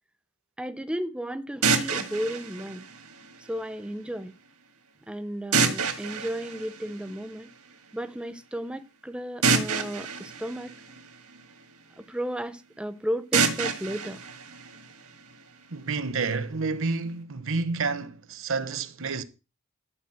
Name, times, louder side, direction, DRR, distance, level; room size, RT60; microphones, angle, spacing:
voice 1, 0.6-2.8 3.4-4.3 5.1-7.5 7.9-10.7 12.0-14.2, equal, 5° right, 0.5 m, -34 dB
sound 1, 1.6-3.6 5.5-7.5 9.4-11.6 13.3-15.4, right 5 dB, 90° right, 1.8 m, -28 dB
voice 2, 15.7-19.2, right 4 dB, 65° right, 0.9 m, -29 dB
12.5 x 4.7 x 7.7 m
head